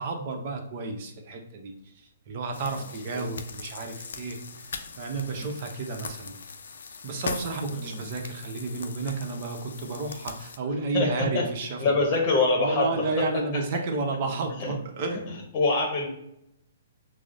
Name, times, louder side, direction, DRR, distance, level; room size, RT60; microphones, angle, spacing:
voice 1, 0.0-1.7 2.3-4.7 5.0-6.4 7.0-11.8 12.6-15.3, right 3 dB, 45° right, 3 dB, 0.8 m, -31 dB
sound 1, 2.5-10.6, left 5 dB, 75° left, 0.4 m, -40 dB
voice 2, 7.7-8.0 10.9-11.4 11.8-13.2 14.6-14.7 15.5-16.1, left 3 dB, 30° left, -1 dB, 0.9 m, -25 dB
6.1 x 2.0 x 2.5 m, 0.78 s
hypercardioid pair, 130°, 0 cm